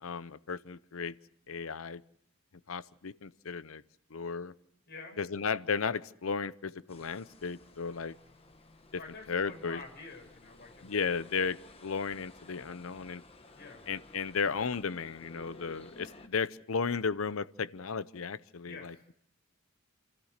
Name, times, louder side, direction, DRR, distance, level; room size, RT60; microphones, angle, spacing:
voice 1, 0.0-1.1 1.5-2.0 2.7-3.8 4.1-4.5 5.2-8.2 9.3-9.8 10.8-13.2 13.9-18.9, left 5 dB, 85° left, 16 dB, 0.7 m, -34 dB
voice 2, 4.9-5.2 9.0-11.3 13.5-13.9 18.7-19.0, left 3 dB, 55° left, 1 dB, 6.5 m, -48 dB
sound 1, 6.9-16.3, left 2 dB, 30° left, 1.2 m, -55 dB
28.5 x 14.0 x 6.6 m, 0.73 s
head